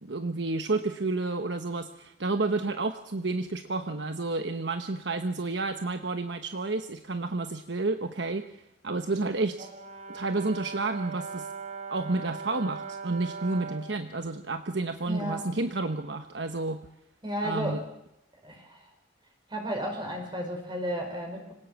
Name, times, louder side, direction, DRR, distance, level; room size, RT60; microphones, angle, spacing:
voice 1, 0.0-8.6 8.8-9.7 10.1-11.5 11.9-16.9 17.4-17.8, right 3 dB, 70° right, 7 dB, 1.1 m, -30 dB
Brass instrument, 9.6-13.9, right 4 dB, 40° right, 3.1 m, -39 dB
voice 2, 15.1-15.5 17.2-17.8 18.4-18.8 19.5-21.6, equal, 25° right, 3 dB, 4.9 m, -33 dB
26.0 x 18.0 x 7.2 m, 0.85 s
head